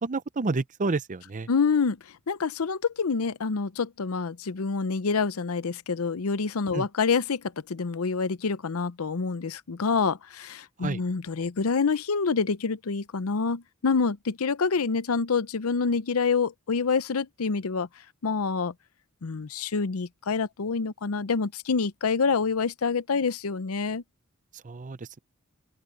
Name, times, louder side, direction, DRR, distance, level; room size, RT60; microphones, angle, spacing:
voice 1, 0.0-1.5 6.7-6.9 10.8-11.0 24.6-25.2, right 3 dB, 35° right, 0.6 m, -30 dB
voice 2, 1.5-2.0 2.3-7.4 7.7-17.9 18.2-18.7 19.2-24.0, left 5 dB, 90° left, 0.7 m, -27 dB
open air
head